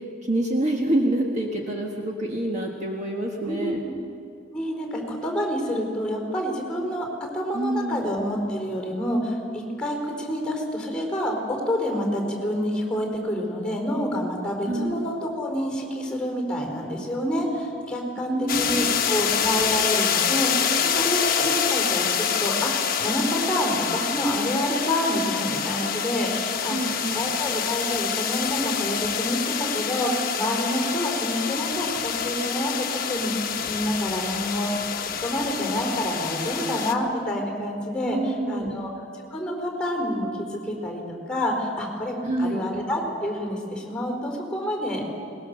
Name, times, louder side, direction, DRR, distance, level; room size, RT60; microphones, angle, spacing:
voice 1, 0.2-3.8 7.5-8.1 14.7-14.9 18.3-19.0 26.7-27.3 38.0-38.8 42.2-42.7, right 1 dB, 35° right, 0 dB, 1.5 m, -27 dB
voice 2, 3.4-3.9 4.5-7.1 7.3-33.3 33.6-38.9 39.3-45.1, equal, 5° left, 1 dB, 4.2 m, -28 dB
sound 1, 18.5-36.9, left 7 dB, 45° left, 1.1 m, -26 dB
21.5 x 20.0 x 6.7 m, 2.5 s
head